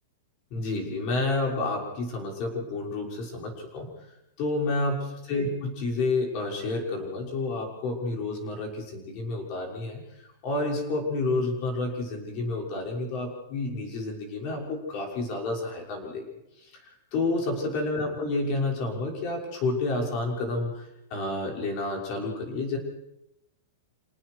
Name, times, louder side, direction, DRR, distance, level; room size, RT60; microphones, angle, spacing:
voice 1, 0.5-3.9 4.4-10.0 10.4-16.3 16.6-16.8 17.1-22.8, left 2 dB, 35° left, 1 dB, 6.1 m, -30 dB
28.5 x 19.0 x 4.8 m, 0.89 s
supercardioid pair, 170°, 0 cm